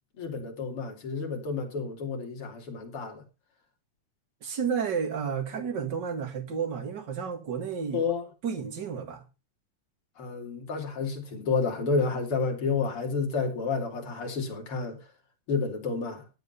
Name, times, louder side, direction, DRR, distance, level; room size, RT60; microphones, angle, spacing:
voice 1, 0.2-3.2 7.9-8.3 10.2-15.0 15.5-16.2, left 4 dB, 45° left, 3.1 m, -30 dB
voice 2, 4.4-8.0 8.4-9.2, right 6 dB, 35° right, 2.1 m, -31 dB
12.0 x 8.0 x 5.4 m
omnidirectional pair, 3.9 m